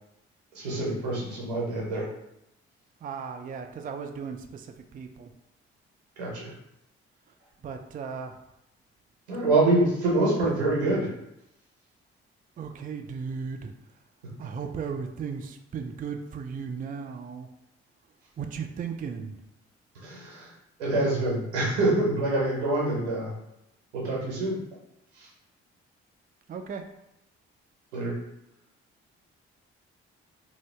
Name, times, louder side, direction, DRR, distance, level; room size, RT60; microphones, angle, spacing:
voice 1, 0.5-2.1 6.2-6.5 9.3-11.1 20.0-20.5 20.8-23.3 23.9-24.6 25.2-25.3 27.9-28.2, right 2 dB, 85° right, -4 dB, 0.9 m, -26 dB
voice 2, 3.0-4.7 4.9-5.3 7.6-8.4 10.4-10.6 12.6-13.7 14.4-17.5 18.4-19.4 26.5-26.9, right 6 dB, 25° right, 5 dB, 0.4 m, -36 dB
2.7 x 2.7 x 3.2 m, 0.84 s
hypercardioid pair, 40°, 32 cm